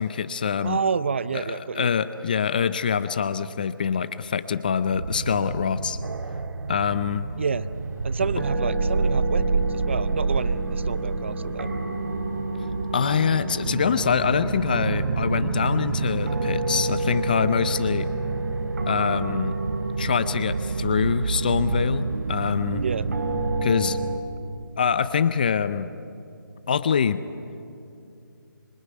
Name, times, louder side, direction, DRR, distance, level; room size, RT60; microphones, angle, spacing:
voice 1, 0.0-0.8 1.3-6.0 6.7-7.3 12.9-18.1 18.9-19.5 20.0-22.8 23.6-24.0 24.8-25.9 26.7-27.2, left 7 dB, 25° left, 14 dB, 0.6 m, -24 dB
voice 2, 0.6-1.9 7.3-7.7 8.0-11.7 22.8-23.1, right 5 dB, 35° right, 15 dB, 0.6 m, -29 dB
sound 1, 4.9-24.2, right 3 dB, 50° right, 3.1 m, -29 dB
sound 2, 6.0-23.8, right 4 dB, 80° right, 0.6 m, -31 dB
26.0 x 23.0 x 9.4 m, 2.5 s
hypercardioid pair, 170°, 12 cm